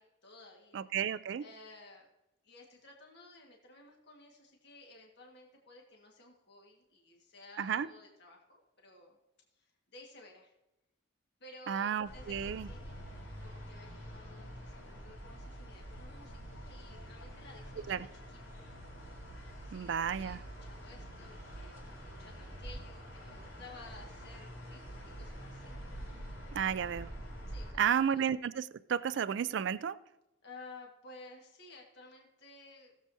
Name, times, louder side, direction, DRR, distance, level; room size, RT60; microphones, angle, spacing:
voice 1, 0.0-0.9 1.4-2.1 2.4-9.2 9.5-10.5 11.4-13.1 13.4-18.8 19.6-25.8 27.5-28.2 30.4-32.9, left 2 dB, 55° left, 0 dB, 1.7 m, -55 dB
voice 2, 0.7-1.4 7.6-7.9 11.7-12.7 17.9-18.1 19.7-20.4 26.5-27.1 27.8-30.0, right 8 dB, 60° right, 15 dB, 0.3 m, -32 dB
sound 1, 12.0-27.7, equal, 75° left, 4.0 m, -47 dB
18.5 x 7.4 x 2.7 m, 0.96 s
head